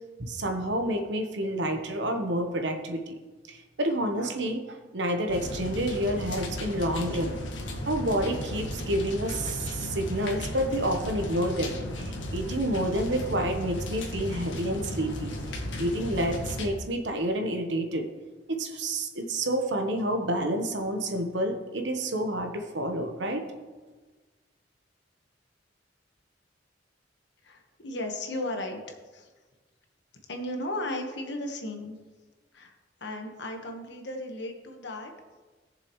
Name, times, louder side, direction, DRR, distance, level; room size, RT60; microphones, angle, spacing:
voice 1, 0.2-3.2 3.5-4.6 4.9-7.4 7.9-15.3 15.8-18.1 18.6-23.5, right 1 dB, 70° right, 5 dB, 1.1 m, -29 dB
sound 1, 5.3-16.7, left 1 dB, 85° left, 1.6 m, -35 dB
voice 2, 27.4-29.3 30.3-32.0 32.5-32.7 33.0-35.1, left 1 dB, 65° left, 3 dB, 1.4 m, -35 dB
18.5 x 6.9 x 3.1 m, 1.3 s
head